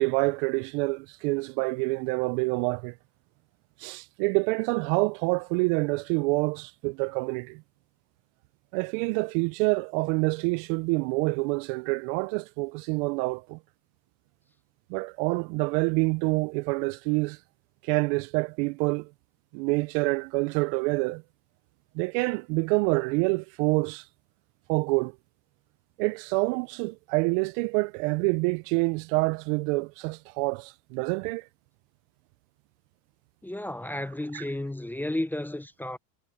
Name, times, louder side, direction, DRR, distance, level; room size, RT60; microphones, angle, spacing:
voice 1, 0.0-2.9 3.8-7.6 8.7-13.6 14.9-17.4 17.8-19.1 19.5-21.2 21.9-24.1 24.7-25.1 26.0-31.5 34.3-34.4, right 28 dB, 55° right, 0.5 m, -27 dB
voice 2, 33.4-36.0, left 1 dB, 5° left, 0.6 m, -32 dB
supercardioid pair, 135°, 47 cm